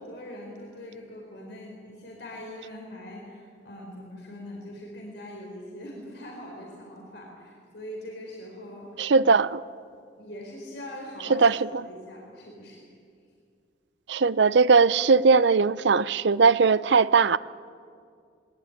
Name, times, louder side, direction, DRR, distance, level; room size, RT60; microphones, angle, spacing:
voice 1, 0.0-9.3 10.0-11.4 11.8-12.8, left 1 dB, 70° left, 4.6 m, -42 dB
voice 2, 9.0-9.6 11.3-11.6 14.1-17.4, right 4 dB, 75° right, 0.6 m, -19 dB
21.5 x 19.0 x 9.9 m
head